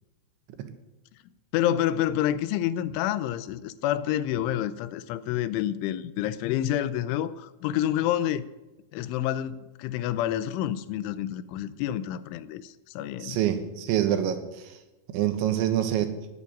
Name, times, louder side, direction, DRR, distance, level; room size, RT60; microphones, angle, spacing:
voice 1, 1.5-8.5 8.9-13.4, left 12 dB, 85° left, 3.2 m, -28 dB
voice 2, 13.2-14.4 15.1-16.1, right 11 dB, 75° right, 3.6 m, -25 dB
17.5 x 8.5 x 9.5 m
omnidirectional pair, 5.5 m